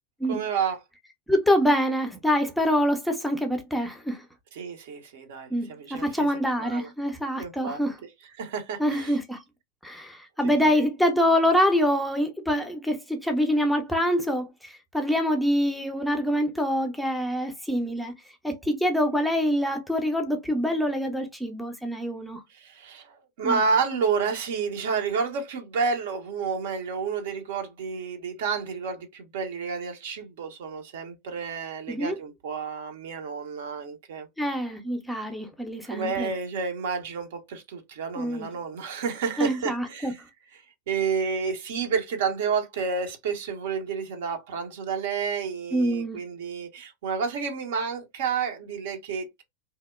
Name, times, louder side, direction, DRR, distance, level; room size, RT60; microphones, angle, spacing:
voice 1, 0.3-0.8 4.5-6.3 6.6-6.9 7.4-7.8 8.4-9.2 10.4-10.8 22.5-34.3 35.8-40.2 40.5-40.6 40.9-49.4, right 5 dB, 55° right, 0.6 m, -30 dB
voice 2, 1.3-4.2 5.5-8.0 8.8-9.4 9.8-18.1 18.4-22.4 23.4-23.6 31.9-32.2 34.4-36.3 38.2-38.5 39.4-40.1 45.7-46.2, equal, ahead, 0.5 m, -25 dB
2.8 x 2.0 x 2.2 m
figure-of-eight pair, 90°, 0 cm